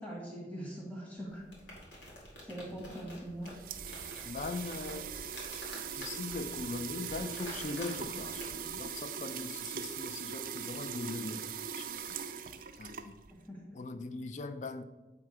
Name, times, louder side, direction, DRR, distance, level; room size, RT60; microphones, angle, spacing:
voice 1, 0.0-1.4 2.4-3.5 13.3-13.6, right 1 dB, 10° left, -5 dB, 1.5 m, -42 dB
sound 1, 1.3-8.8, equal, 85° left, 2.3 m, -49 dB
sound 2, 3.2-13.5, right 8 dB, 50° right, 0.4 m, -41 dB
voice 2, 4.2-5.2 5.9-12.2 12.8-13.2 13.7-14.8, left 3 dB, 40° left, 10 dB, 0.4 m, -40 dB
7.6 x 3.6 x 4.8 m, 1.2 s
head